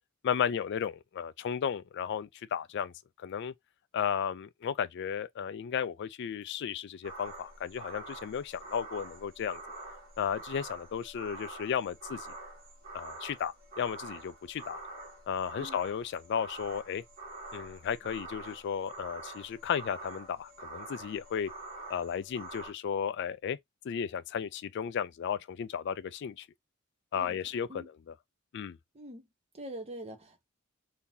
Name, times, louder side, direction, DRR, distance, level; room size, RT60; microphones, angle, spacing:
voice 1, 0.2-3.5 3.9-9.6 10.2-12.3 12.9-14.8 15.3-17.0 17.5-21.5 21.9-23.6 23.8-26.5 27.1-28.1 28.5-28.8, left 8 dB, 55° left, 0.3 m, -34 dB
sound 1, 7.0-22.7, right 2 dB, 45° right, 1.8 m, -46 dB
voice 2, 28.9-29.3 29.5-30.4, right 1 dB, 30° right, 0.8 m, -44 dB
3.7 x 2.8 x 2.6 m
head